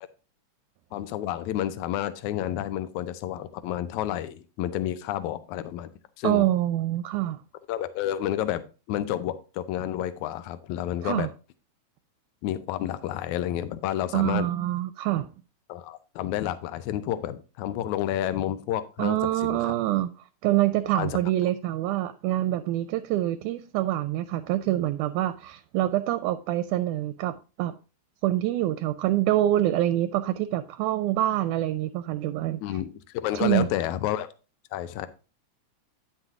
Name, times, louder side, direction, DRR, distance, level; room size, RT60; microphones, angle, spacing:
voice 1, 0.9-5.9 6.2-6.5 7.7-8.6 8.9-11.3 12.4-14.5 15.7-19.7 21.0-21.2 32.6-34.3 34.7-35.1, left 12 dB, 75° left, 2.0 m, -30 dB
voice 2, 6.2-7.4 11.0-11.3 14.1-15.3 19.0-20.1 20.4-27.8 28.2-32.6 33.3-33.7, right 14 dB, 85° right, 2.0 m, -26 dB
9.3 x 5.8 x 3.6 m
omnidirectional pair, 3.5 m